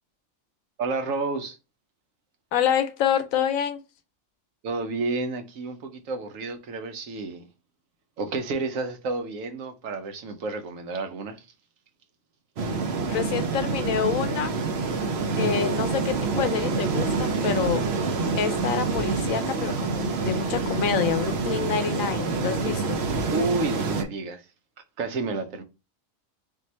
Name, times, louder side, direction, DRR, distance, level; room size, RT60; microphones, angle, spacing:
voice 1, 0.8-1.6 4.6-7.5 8.2-11.4 23.3-24.4 25.0-25.6, right 3 dB, 80° right, 1.1 m, -30 dB
voice 2, 2.5-3.8 13.0-14.5 15.4-17.8 18.4-23.0, left 8 dB, 85° left, 1.1 m, -27 dB
sound 1, 12.6-24.0, right 4 dB, 60° right, 0.9 m, -27 dB
3.8 x 2.8 x 4.1 m
omnidirectional pair, 1.4 m